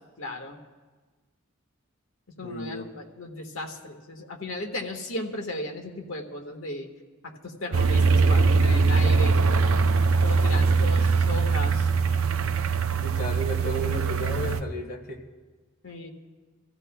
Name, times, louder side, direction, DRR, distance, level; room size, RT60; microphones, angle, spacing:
voice 1, 0.2-0.6 2.4-6.9 7.2-9.4 10.2-11.9 15.8-16.1, left 1 dB, 75° left, 3 dB, 1.5 m, -35 dB
voice 2, 2.4-2.9 13.0-15.2, equal, 45° left, 2 dB, 1.6 m, -33 dB
sound 1, 7.7-14.6, right 4 dB, 75° right, 0.6 m, -22 dB
27.0 x 15.0 x 2.2 m, 1.3 s
head